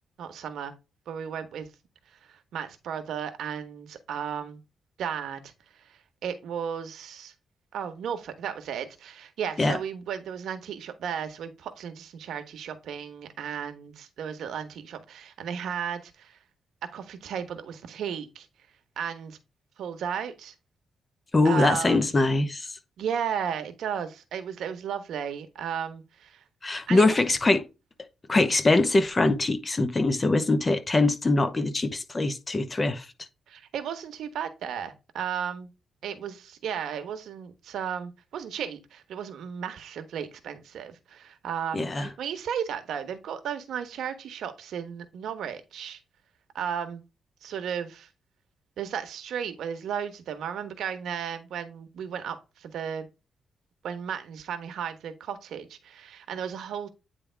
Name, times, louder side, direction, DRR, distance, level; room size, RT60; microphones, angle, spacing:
voice 1, 0.2-0.7 1.1-1.7 2.1-4.6 5.0-7.3 7.7-16.4 16.8-18.5 19.0-19.4 19.8-20.5 21.4-22.1 23.0-26.4 26.9-27.2 33.5-35.7 36.0-46.0 46.5-47.0 47.4-48.1 48.8-53.1 53.8-56.9, right 8 dB, 80° right, 1.2 m, -34 dB
voice 2, 21.3-22.7 26.6-27.7 28.3-33.1 41.7-42.1, left 2 dB, 25° left, 0.9 m, -23 dB
9.2 x 3.5 x 3.4 m
cardioid pair, 110°, 0 cm